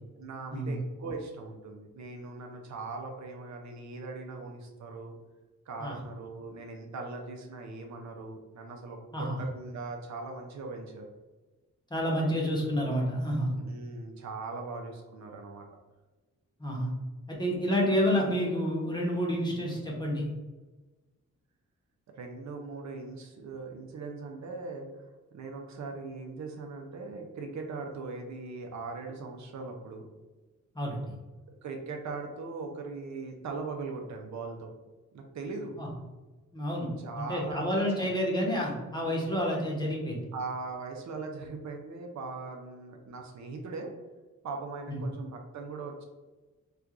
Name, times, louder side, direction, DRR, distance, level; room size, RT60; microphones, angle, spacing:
voice 1, 0.2-5.1 5.7-11.1 13.6-15.7 22.1-25.1 25.3-30.1 31.6-34.7 35.1-35.8 37.0-38.1 38.9-39.4 40.3-43.9 44.4-46.0, right 3 dB, 65° right, 2 dB, 0.6 m, -40 dB
voice 2, 11.9-13.5 16.6-16.9 17.3-20.3 30.7-31.1 35.7-35.9 36.5-36.9 37.1-40.3 44.9-45.0, equal, 15° left, -3 dB, 0.9 m, -29 dB
4.4 x 2.3 x 2.4 m, 1.2 s
wide cardioid pair, 120°, 31 cm